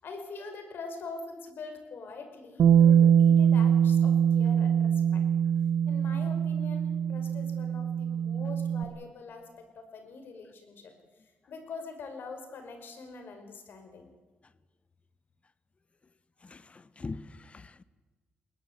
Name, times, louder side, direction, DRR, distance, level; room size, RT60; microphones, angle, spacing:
voice 1, 0.0-5.2 5.9-10.9 11.5-14.1, left 4 dB, 65° left, 7 dB, 5.4 m, -44 dB
Bass guitar, 2.6-8.8, right 8 dB, 70° right, 1.5 m, -23 dB
voice 2, 16.4-17.8, left 3 dB, 30° left, 17 dB, 1.2 m, -42 dB
21.0 x 19.5 x 8.2 m, 1.3 s
cardioid pair, 75°, 4 cm